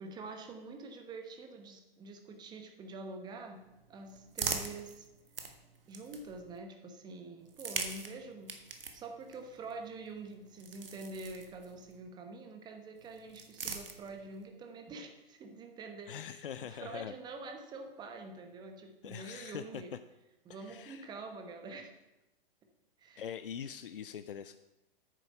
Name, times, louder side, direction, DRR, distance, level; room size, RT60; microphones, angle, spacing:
voice 1, 0.0-3.6 3.9-5.1 5.9-8.5 8.9-19.9 20.4-22.0 23.0-23.2 23.7-23.8, right 3 dB, 15° right, 5 dB, 1.0 m, -46 dB
sound 1, 3.5-6.6 7.4-12.0 13.0-14.4, right 4 dB, 70° right, 1.4 m, -43 dB
voice 2, 16.1-17.2 19.0-19.8 20.6-21.1 23.2-24.6, left 8 dB, 65° left, 12 dB, 0.5 m, -43 dB
9.2 x 7.3 x 5.6 m, 0.97 s
figure-of-eight pair, 115°, 29 cm